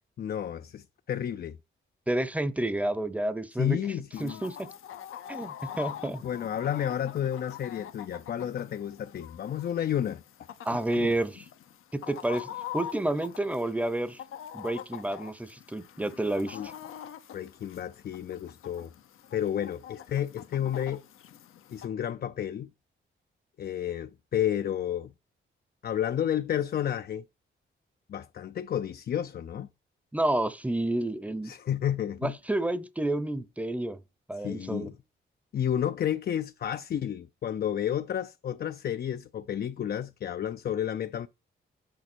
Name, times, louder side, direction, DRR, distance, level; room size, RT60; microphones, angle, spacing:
voice 1, 0.2-1.6 3.5-4.4 6.2-10.5 11.0-11.1 16.5-16.7 17.3-18.9 19.3-21.0 21.7-22.7 23.6-25.1 25.8-27.2 28.1-29.7 31.4-32.3 34.3-34.9 35.5-41.3, left 10 dB, 50° left, 0.4 m, -31 dB
voice 2, 2.1-3.8 4.2-4.6 5.3-6.2 10.6-11.5 11.9-12.5 12.7-14.2 14.5-16.6 30.1-31.5 32.2-34.0 34.3-34.9, right 1 dB, 5° right, 0.7 m, -30 dB
Chicken rooster, 4.1-21.9, left 10 dB, 85° left, 0.7 m, -44 dB
6.7 x 5.0 x 4.4 m
cardioid pair, 85°, 21 cm